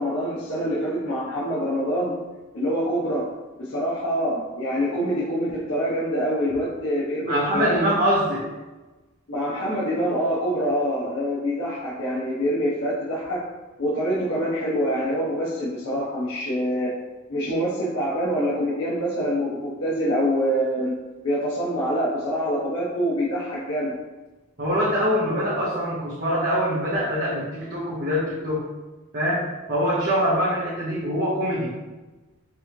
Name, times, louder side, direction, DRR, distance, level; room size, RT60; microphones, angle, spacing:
voice 1, 0.0-2.2 2.5-3.3 3.6-7.8 9.3-13.4 13.8-17.0 17.3-21.0 21.2-24.0, equal, 80° left, -8 dB, 1.0 m, -25 dB
voice 2, 7.3-8.5 24.6-28.6 29.1-31.7, equal, 45° right, -7 dB, 0.8 m, -24 dB
4.7 x 3.1 x 2.7 m, 1.2 s
head